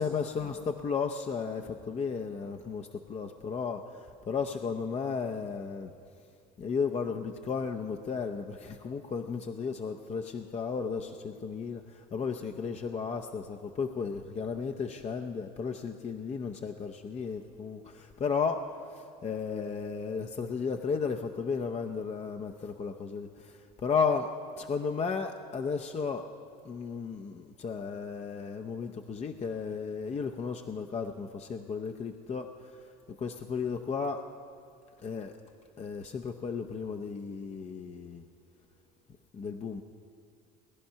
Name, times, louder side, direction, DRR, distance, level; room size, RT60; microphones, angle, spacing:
voice 1, 0.0-5.9 6.6-24.3 24.6-26.3 26.6-34.2 35.0-35.3 35.8-38.2 39.3-39.8, left 5 dB, 35° left, 5 dB, 0.7 m, -34 dB
19.0 x 10.5 x 5.7 m, 2.4 s
supercardioid pair, 80°, 20 cm